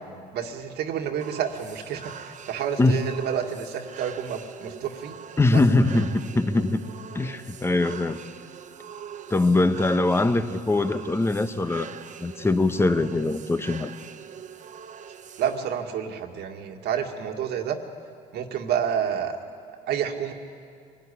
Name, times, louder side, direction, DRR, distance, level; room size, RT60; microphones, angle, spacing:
voice 1, 0.3-5.1 5.5-5.6 15.4-17.8 18.3-19.4 19.9-20.3, right 8 dB, 75° right, 4 dB, 2.1 m, -29 dB
sound 1, 1.2-15.8, right 8 dB, 45° right, 1.1 m, -43 dB
voice 2, 5.4-6.9 7.1-8.2 9.3-11.9 12.2-13.9, left 2 dB, 15° left, 11 dB, 1.1 m, -22 dB
25.0 x 17.0 x 10.0 m, 2.4 s
cardioid pair, 110°, 17 cm